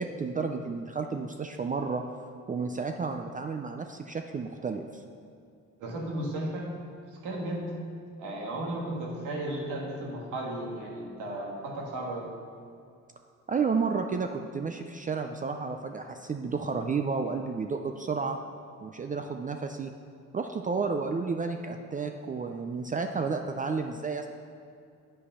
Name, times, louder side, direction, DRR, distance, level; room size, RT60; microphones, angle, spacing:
voice 1, 0.0-2.0 2.5-5.0 13.5-18.4 18.8-19.9 20.3-24.3, right 4 dB, 25° right, 5 dB, 0.4 m, -31 dB
voice 2, 5.8-6.7 7.1-7.7 8.2-12.3, right 1 dB, 85° right, -2 dB, 1.8 m, -34 dB
8.4 x 5.2 x 5.5 m, 2.4 s
cardioid pair, 90°, 30 cm